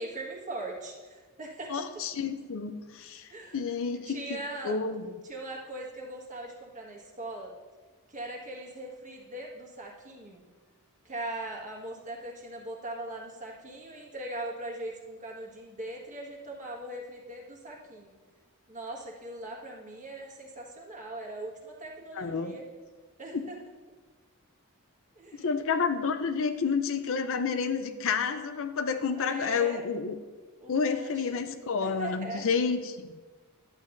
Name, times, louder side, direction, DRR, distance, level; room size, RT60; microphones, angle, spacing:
voice 1, 0.0-1.9 3.3-3.6 3.9-4.8 5.2-7.5 8.1-10.4 11.0-18.1 18.7-22.6 23.2-23.6 25.1-25.5 29.2-29.8 30.6-31.3 31.8-32.5, right 1 dB, 35° right, -2 dB, 1.5 m, -40 dB
voice 2, 1.7-4.2 4.6-5.0 22.2-22.5 23.3-23.4 25.4-30.2 30.7-33.1, left 5 dB, 60° left, 9 dB, 0.5 m, -30 dB
11.5 x 8.9 x 2.6 m, 1.4 s
head